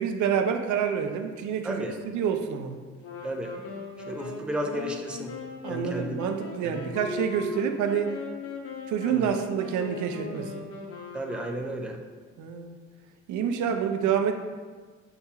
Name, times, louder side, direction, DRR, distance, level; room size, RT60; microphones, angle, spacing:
voice 1, 0.0-2.8 5.6-8.1 8.9-10.6 12.4-12.8 13.3-14.3, right 7 dB, 75° right, 6 dB, 0.5 m, -28 dB
voice 2, 1.6-2.0 3.2-3.5 4.1-5.3 5.7-6.2 6.6-6.9 9.1-9.3 11.1-12.0, right 1 dB, 5° right, 3 dB, 0.4 m, -33 dB
Wind instrument woodwind instrument, 3.0-12.0, left 4 dB, 50° left, 0.7 m, -39 dB
6.7 x 2.3 x 2.7 m, 1.5 s
cardioid pair, 90°, 30 cm